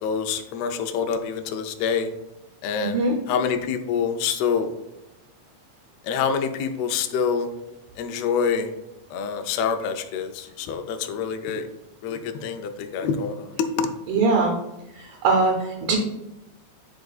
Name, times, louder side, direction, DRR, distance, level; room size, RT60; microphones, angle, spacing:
voice 1, 0.0-2.1 2.6-4.7 6.0-7.5 8.0-8.7 9.1-11.7 12.0-13.9, left 6 dB, 80° left, 6 dB, 1.5 m, -26 dB
voice 2, 2.8-3.2 14.1-14.5 15.0-16.0, right 3 dB, 75° right, 1 dB, 2.2 m, -21 dB
10.5 x 3.7 x 2.4 m, 0.95 s
omnidirectional pair, 3.6 m